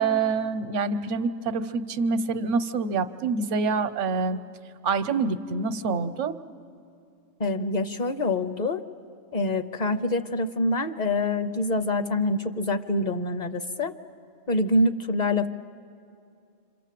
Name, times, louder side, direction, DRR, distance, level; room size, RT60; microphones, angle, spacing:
voice 1, 0.0-4.4 4.8-6.3, right 4 dB, 80° right, 12 dB, 1.1 m, -26 dB
voice 2, 7.4-8.8 9.3-13.9 14.5-15.5, left 2 dB, 45° left, 10 dB, 0.7 m, -25 dB
27.0 x 26.5 x 7.5 m, 2.5 s
omnidirectional pair, 1.2 m